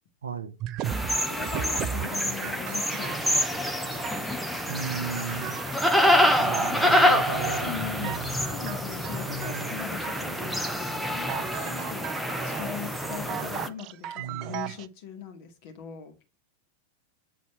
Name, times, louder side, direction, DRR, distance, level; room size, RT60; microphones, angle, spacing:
voice 1, 0.2-0.6 4.7-5.6 6.4-8.3 9.2-9.8 14.2-14.7, right 6 dB, 70° right, 0.8 m, -35 dB
sound 1, 0.6-14.9, right 11 dB, 40° right, 0.4 m, -37 dB
sound 2, 0.8-13.7, equal, ahead, 0.8 m, -27 dB
voice 2, 1.2-4.3 7.6-16.1, left 8 dB, 50° left, 2.2 m, -40 dB
8.2 x 4.1 x 4.5 m
figure-of-eight pair, 90°, 0 cm